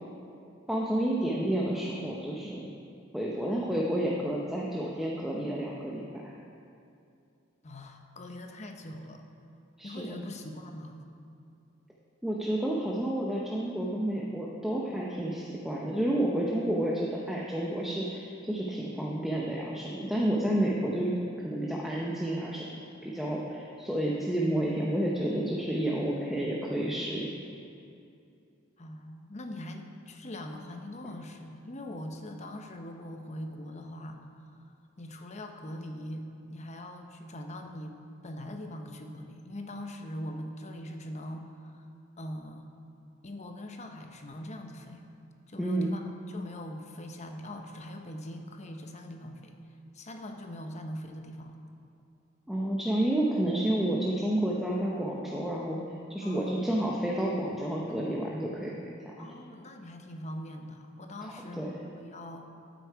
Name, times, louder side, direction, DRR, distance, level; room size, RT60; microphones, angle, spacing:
voice 1, 0.7-2.7 3.1-6.3 9.8-10.2 12.2-21.1 21.4-27.4 45.6-45.9 52.5-55.8 56.1-58.8 59.0-59.3 61.2-61.8, right 1 dB, ahead, -4 dB, 0.7 m, -30 dB
voice 2, 7.6-9.2 9.8-11.0 28.8-34.6 35.0-41.8 42.2-42.7 43.2-45.0 45.5-46.0 46.3-49.6 49.9-51.6 56.2-56.8 59.2-62.5, left 1 dB, 35° left, 4 dB, 0.8 m, -42 dB
13.0 x 8.1 x 4.7 m, 2.5 s
head